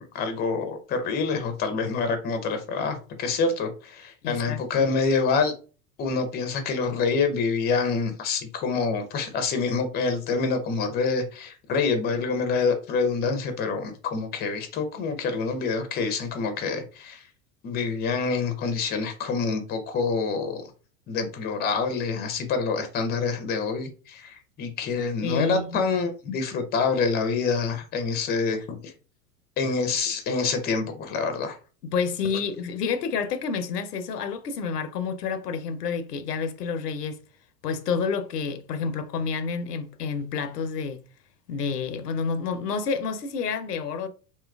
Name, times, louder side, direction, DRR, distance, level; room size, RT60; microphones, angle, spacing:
voice 1, 0.0-5.5 6.0-17.2 17.6-20.6 21.1-28.9 29.6-31.6, left 4 dB, 20° left, 0.5 m, -26 dB
voice 2, 4.2-4.9 25.2-25.8 31.8-37.2 37.6-41.0 41.5-44.1, left 5 dB, 80° left, 0.6 m, -29 dB
2.8 x 2.3 x 2.2 m
figure-of-eight pair, 85°, 47 cm